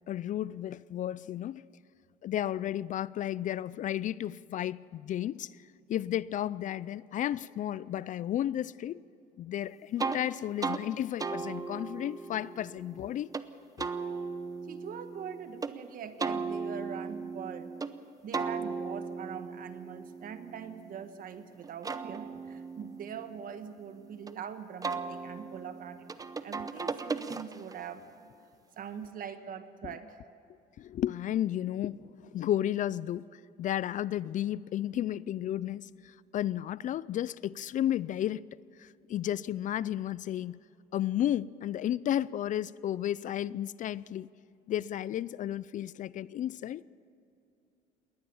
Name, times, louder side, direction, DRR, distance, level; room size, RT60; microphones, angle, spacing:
voice 1, 0.1-1.6 2.2-5.5 5.9-9.0 9.4-13.3 30.8-38.5 38.8-40.6 40.9-44.3 44.7-46.8, left 11 dB, 50° left, 0.4 m, -33 dB
sound 1, 10.0-10.2 10.6-10.8 11.2-13.5 13.8-15.7 16.2-17.9 18.3-21.2 21.6-24.3 24.8-27.8, right 4 dB, 20° right, 0.8 m, -37 dB
voice 2, 14.7-17.7 18.2-26.1 26.4-28.1 28.8-30.2, right 8 dB, 55° right, 1.5 m, -42 dB
21.0 x 18.5 x 7.1 m
cardioid pair, 110°, 17 cm